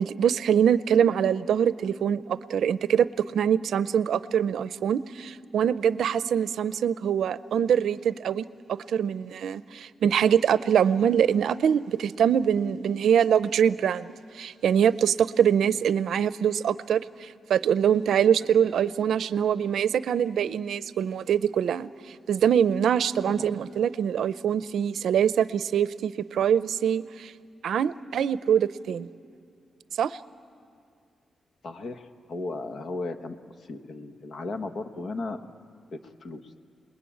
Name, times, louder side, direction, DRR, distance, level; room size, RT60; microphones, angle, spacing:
voice 1, 0.0-3.1 3.3-8.5 8.9-14.1 14.3-21.9 22.3-27.3 27.6-29.1 30.0-30.2, right 8 dB, 85° right, 15 dB, 0.6 m, -24 dB
voice 2, 31.6-33.4 33.7-35.5 35.9-36.6, left 3 dB, 55° left, 8 dB, 1.2 m, -36 dB
28.5 x 21.0 x 8.7 m, 2.3 s
wide cardioid pair, 155°, 0 cm